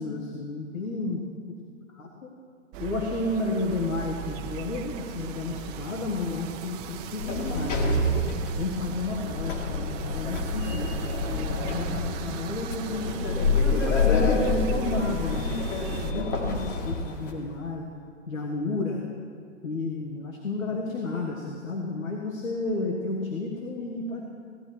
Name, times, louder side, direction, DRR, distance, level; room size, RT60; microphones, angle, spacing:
voice 1, 0.0-1.6 1.9-2.3 2.8-8.0 8.6-13.5 14.0-17.9 18.3-19.0 19.6-24.2, left 3 dB, 90° left, 0 dB, 1.6 m, -32 dB
sound 1, 2.7-16.1, right 8 dB, 30° right, 0.7 m, -39 dB
Sliding door, 7.2-17.3, left 3 dB, 65° left, 2.2 m, -27 dB
16.5 x 10.0 x 4.6 m, 2.1 s
hypercardioid pair, 135°, 39 cm